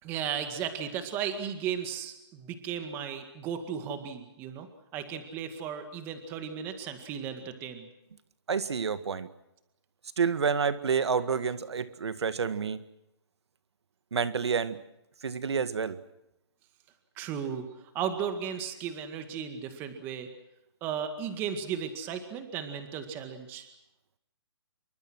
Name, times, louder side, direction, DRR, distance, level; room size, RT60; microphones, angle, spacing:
voice 1, 0.0-4.7 4.9-7.9 17.2-20.3 20.8-23.7, right 8 dB, 15° right, 7 dB, 2.0 m, -35 dB
voice 2, 8.5-9.3 10.2-12.8 14.1-14.8 15.2-16.0, right 6 dB, 75° right, 12 dB, 1.8 m, -29 dB
27.5 x 24.0 x 6.3 m, 0.86 s
hypercardioid pair, 170°, 14 cm